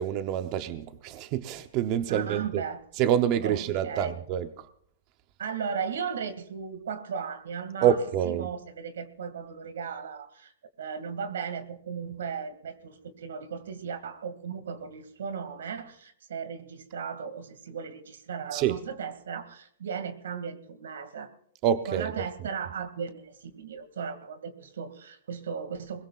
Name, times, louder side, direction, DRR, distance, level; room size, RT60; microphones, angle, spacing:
voice 1, 0.0-2.6 3.0-4.7 7.8-8.5 18.5-18.8 21.6-22.1, right 10 dB, 35° right, 9 dB, 0.8 m, -27 dB
voice 2, 2.1-2.8 3.4-4.1 5.4-8.0 8.2-10.5 10.8-21.3 21.9-26.0, right 6 dB, 90° right, 10 dB, 2.2 m, -36 dB
22.0 x 21.0 x 2.4 m, 0.63 s
hypercardioid pair, 165°, 0 cm